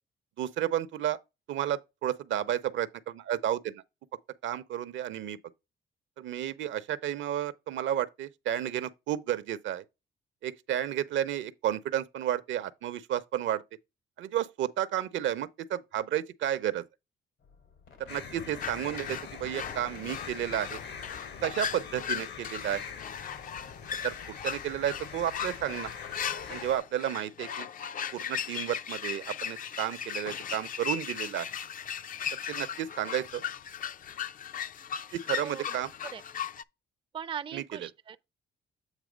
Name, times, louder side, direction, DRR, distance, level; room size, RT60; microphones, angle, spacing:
voice 1, 0.4-1.2 1.5-3.8 4.4-5.4 6.2-9.8 10.4-13.6 14.2-16.8 18.1-20.8 21.4-22.8 24.0-25.9 26.5-27.7 28.1-31.5 32.5-33.4 35.1-35.9 37.5-37.9, right 11 dB, 75° right, 0.7 m, -32 dB
sound 1, 17.4-24.0 24.3-24.4, left 5 dB, 85° left, 2.7 m, -56 dB
sound 2, 18.1-26.8, left 6 dB, 60° left, 0.9 m, -43 dB
sound 3, 18.6-36.6, left 8 dB, 45° left, 0.4 m, -37 dB
voice 2, 37.1-38.3, right 7 dB, 25° right, 0.4 m, -39 dB
8.2 x 3.0 x 5.0 m
cardioid pair, 90°, 20 cm